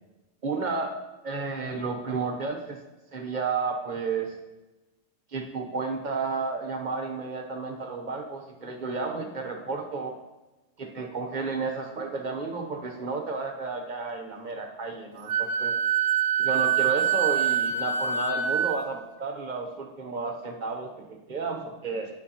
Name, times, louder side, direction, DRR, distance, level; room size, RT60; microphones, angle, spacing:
voice 1, 0.4-0.9 1.2-2.8 3.1-4.3 5.3-10.2 10.8-15.7 16.4-22.1, right 4 dB, 40° right, 4 dB, 0.8 m, -32 dB
Wind instrument woodwind instrument, 15.3-18.8, right 8 dB, 80° right, 1.0 m, -25 dB
9.6 x 8.4 x 2.8 m, 1.1 s
omnidirectional pair, 1.3 m